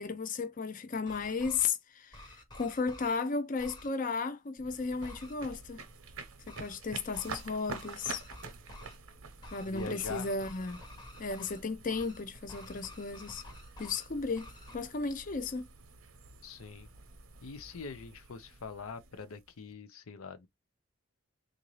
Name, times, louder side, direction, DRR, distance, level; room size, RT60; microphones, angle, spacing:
voice 1, 0.0-5.8 6.5-8.2 9.5-10.8 11.2-13.4 13.8-15.7, left 4 dB, 40° left, 0.5 m, -34 dB
sound 1, 0.9-1.7 2.1-3.2 3.6-3.9 5.0-5.3 6.5-6.8 7.1-7.4 7.7-9.0 9.4-11.6 11.9-12.2 12.5-14.1 14.4-14.7, left 1 dB, 20° left, 1.0 m, -50 dB
sound 2, 4.6-19.7, right 4 dB, 80° right, 0.8 m, -48 dB
voice 2, 9.6-10.3 16.4-16.9 17.4-20.5, left 4 dB, 85° left, 0.6 m, -43 dB
3.8 x 2.6 x 3.0 m
head